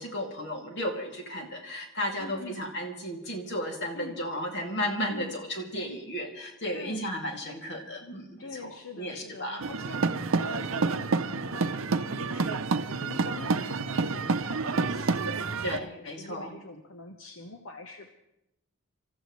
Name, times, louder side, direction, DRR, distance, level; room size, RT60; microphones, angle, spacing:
voice 1, 0.0-10.0 15.6-16.5, equal, 55° left, 1 dB, 2.6 m, -34 dB
voice 2, 2.2-2.6 3.9-4.3 5.1-5.3 6.7-7.1 8.4-18.1, left 3 dB, 75° left, 4 dB, 1.1 m, -44 dB
sound 1, 9.6-15.8, right 4 dB, 70° right, 0.7 m, -29 dB
27.0 x 14.5 x 3.2 m, 0.87 s
head